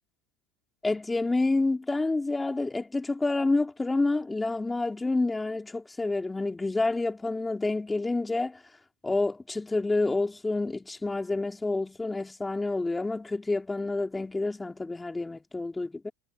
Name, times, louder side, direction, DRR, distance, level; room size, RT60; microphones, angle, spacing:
voice 1, 0.8-8.6 9.0-16.1, left 2 dB, 10° left, 3.0 m, -28 dB
supercardioid pair, 110°, 0 cm